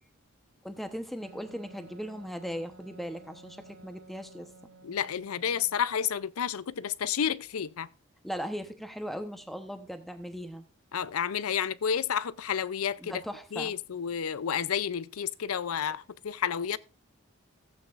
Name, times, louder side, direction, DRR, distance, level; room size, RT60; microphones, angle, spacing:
voice 1, 0.6-4.5 8.2-10.6 13.0-13.7, equal, ahead, 0.9 m, -38 dB
Wind instrument woodwind instrument, 1.2-5.8, right 1 dB, 85° right, 1.4 m, -53 dB
voice 2, 4.8-7.9 10.9-13.1 13.5-16.8, left 8 dB, 85° left, 0.5 m, -30 dB
15.5 x 8.3 x 2.5 m
head